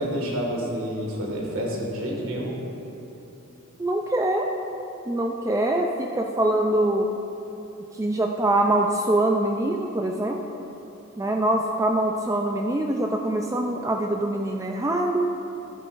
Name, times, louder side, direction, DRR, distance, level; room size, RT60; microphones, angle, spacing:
voice 1, 0.0-2.6, equal, 85° right, -2 dB, 1.8 m, -28 dB
voice 2, 3.8-4.5 5.1-7.1 7.9-10.4 11.2-15.3, right 1 dB, 15° right, 1 dB, 0.4 m, -24 dB
15.0 x 8.8 x 2.5 m, 3.0 s
head